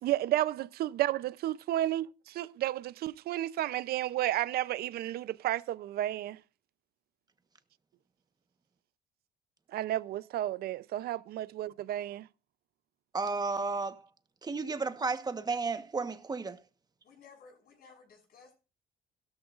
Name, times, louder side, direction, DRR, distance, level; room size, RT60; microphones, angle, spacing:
voice 1, 0.0-6.4 9.7-12.3, right 14 dB, 65° right, 0.6 m, -32 dB
voice 2, 13.1-14.0 14.4-16.6, right 4 dB, 25° right, 1.2 m, -33 dB
voice 3, 17.0-18.6, left 5 dB, 65° left, 6.6 m, -56 dB
16.0 x 13.5 x 2.5 m
cardioid pair, 110°, 17 cm